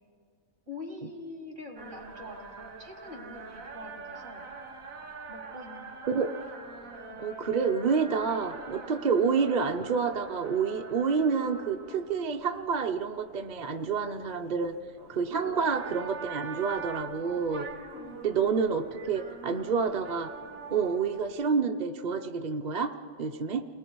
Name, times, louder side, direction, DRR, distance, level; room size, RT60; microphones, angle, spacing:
voice 1, 0.7-4.5 5.3-6.0 7.1-7.2 9.1-9.4 15.4-15.6 17.9-18.3, left 2 dB, 60° right, 2 dB, 3.0 m, -44 dB
sound 1, 1.8-21.5, right 4 dB, 90° right, 1.9 m, -44 dB
voice 2, 7.2-14.8 15.1-17.7 18.2-20.3 20.7-23.6, right 5 dB, 40° right, 6 dB, 0.8 m, -28 dB
29.0 x 21.0 x 4.7 m, 2.2 s
omnidirectional pair, 1.4 m